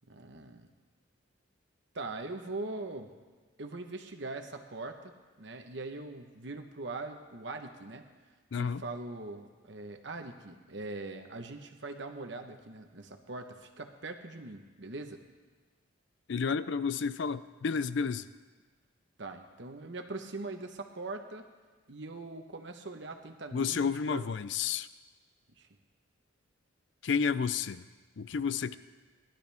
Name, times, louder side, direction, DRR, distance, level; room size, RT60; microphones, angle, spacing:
voice 1, 0.1-0.7 1.9-3.1 3.6-8.1 8.6-15.2 19.2-21.5 21.9-24.3 25.6-25.7, right 2 dB, 60° right, 5 dB, 1.1 m, -42 dB
voice 2, 8.5-8.8 16.3-18.3 23.5-24.9 27.0-27.9 28.2-28.8, left 6 dB, 60° left, 14 dB, 0.4 m, -31 dB
19.0 x 12.0 x 3.5 m, 1.4 s
head